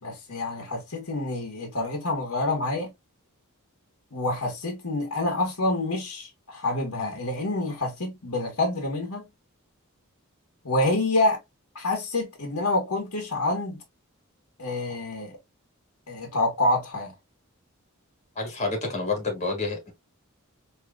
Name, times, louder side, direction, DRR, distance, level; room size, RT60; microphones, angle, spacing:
voice 1, 0.0-2.9 4.1-9.3 10.6-11.4 11.7-13.8 14.6-15.4 16.1-17.1, left 2 dB, 90° left, 1.4 m, -27 dB
voice 2, 18.4-19.9, left 3 dB, 30° left, 2.0 m, -29 dB
4.7 x 3.2 x 2.3 m
head